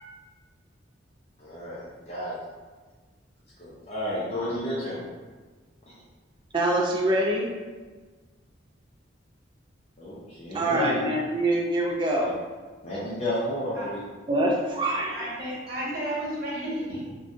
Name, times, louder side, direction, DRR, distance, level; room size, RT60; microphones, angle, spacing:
voice 1, 1.4-2.4 3.6-5.0 5.9-6.0 10.0-11.0 12.2-12.3 12.8-14.0, left 1 dB, 35° left, -9 dB, 0.5 m, -32 dB
voice 2, 6.5-7.5 10.5-12.3 14.3-15.3 15.9-16.0, right 1 dB, 25° right, -1 dB, 0.3 m, -25 dB
voice 3, 15.1-17.1, right 1 dB, 50° right, -6 dB, 1.0 m, -32 dB
2.6 x 2.2 x 3.6 m, 1.4 s
head